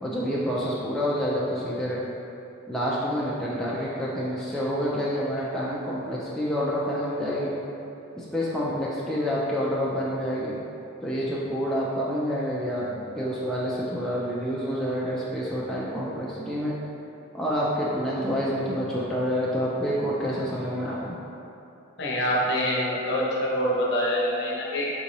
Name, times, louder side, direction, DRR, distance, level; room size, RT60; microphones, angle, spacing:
voice 1, 0.0-2.0 2.7-7.5 8.1-10.6 11.0-16.8 17.3-21.2, equal, ahead, -7 dB, 0.3 m, -28 dB
voice 2, 22.0-24.9, equal, 55° left, -5 dB, 0.8 m, -25 dB
4.0 x 3.6 x 2.9 m, 2.8 s
head